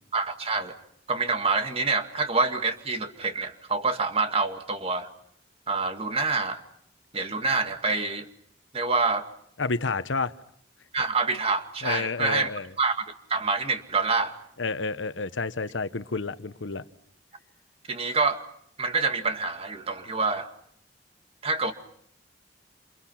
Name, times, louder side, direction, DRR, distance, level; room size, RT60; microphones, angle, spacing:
voice 1, 0.1-0.8 1.1-5.1 5.7-6.6 7.1-8.3 8.7-9.3 10.9-12.5 12.8-13.0 13.3-14.4 17.9-18.4 18.8-20.5 21.4-21.7, right 4 dB, 30° right, 2.1 m, -26 dB
voice 2, 9.6-10.3 11.8-12.7 14.6-16.8, left 4 dB, 90° left, 1.0 m, -30 dB
28.5 x 28.5 x 5.9 m
head